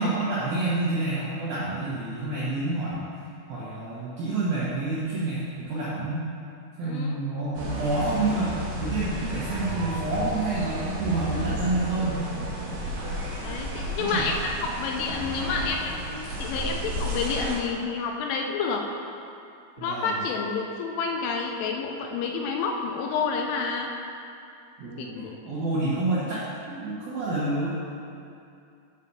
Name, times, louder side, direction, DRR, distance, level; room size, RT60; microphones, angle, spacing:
voice 1, 0.0-3.0 3.5-6.2 6.8-12.3 14.0-14.3 19.8-20.2 24.8-27.7, right 2 dB, 75° right, -9 dB, 2.2 m, -28 dB
voice 2, 6.8-7.2 13.4-18.8 19.8-23.9 25.0-25.4, left 4 dB, 80° left, 2 dB, 3.0 m, -29 dB
sound 1, 7.5-17.5, equal, 60° right, 3.4 m, -33 dB
8.3 x 4.1 x 6.8 m, 2.6 s
omnidirectional pair, 5.9 m